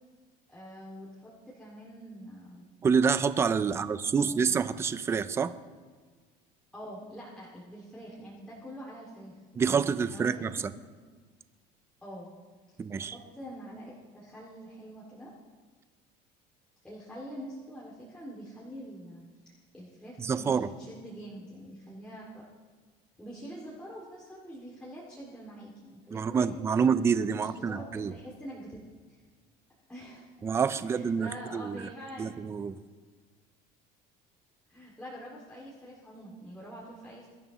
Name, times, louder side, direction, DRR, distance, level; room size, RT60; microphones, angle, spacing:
voice 1, 0.5-2.7 3.6-4.5 6.7-10.7 12.0-12.3 12.9-15.3 16.8-22.4 23.2-26.9 27.3-28.8 29.1-29.2 29.9-30.3 30.8-32.3 34.7-37.3, equal, 5° left, -7 dB, 2.3 m, -45 dB
voice 2, 2.8-5.5 9.6-10.6 12.8-13.2 20.2-20.7 26.1-28.1 30.4-31.9 32.2-32.8, right 6 dB, 15° right, 13 dB, 0.4 m, -27 dB
23.0 x 12.5 x 3.1 m, 1.5 s
cardioid pair, 165°, 17 cm